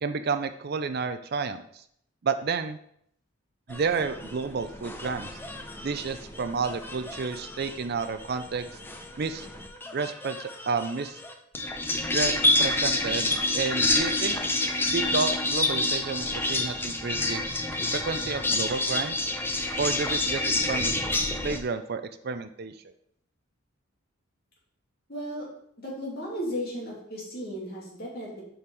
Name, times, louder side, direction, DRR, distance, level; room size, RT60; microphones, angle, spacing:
voice 1, 0.0-1.8 2.2-2.8 3.7-5.3 5.8-8.7 9.2-9.5 9.9-11.2 12.1-14.4 14.9-17.4 17.9-19.3 19.8-20.9 21.4-22.9, right 5 dB, 45° right, 10 dB, 0.4 m, -31 dB
sound 1, 3.7-21.6, left 2 dB, 10° left, 0.6 m, -28 dB
voice 2, 25.1-25.5 25.8-28.4, equal, 45° left, -4 dB, 2.6 m, -35 dB
7.1 x 5.3 x 4.8 m, 0.70 s
head